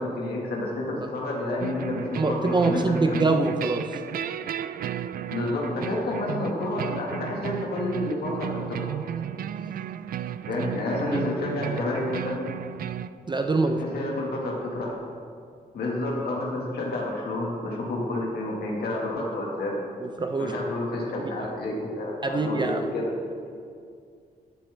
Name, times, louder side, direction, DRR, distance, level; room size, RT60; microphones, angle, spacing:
voice 1, 0.0-3.3 5.3-9.0 10.5-12.5 13.6-15.0 15.7-19.7 20.4-23.1, left 2 dB, 80° left, -3 dB, 1.8 m, -29 dB
sound 1, 1.6-13.1, right 10 dB, 65° right, 0.4 m, -34 dB
voice 2, 2.2-4.0 11.1-11.2 13.3-13.8 20.0-20.5 21.4-21.5 22.2-22.8, right 3 dB, 30° right, 5 dB, 0.7 m, -24 dB
14.0 x 7.4 x 3.4 m, 2.2 s
cardioid pair, 85°, 16 cm